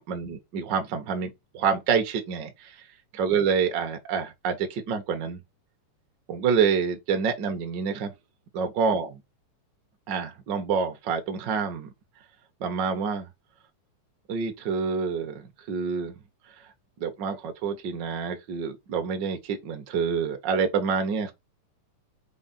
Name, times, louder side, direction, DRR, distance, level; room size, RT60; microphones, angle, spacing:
voice 1, 0.0-2.8 3.1-5.4 6.3-8.1 8.5-9.2 10.1-11.9 12.6-13.3 14.3-16.1 17.0-21.3, right 6 dB, 85° right, 0.9 m, -27 dB
5.1 x 4.3 x 4.2 m
omnidirectional pair, 3.7 m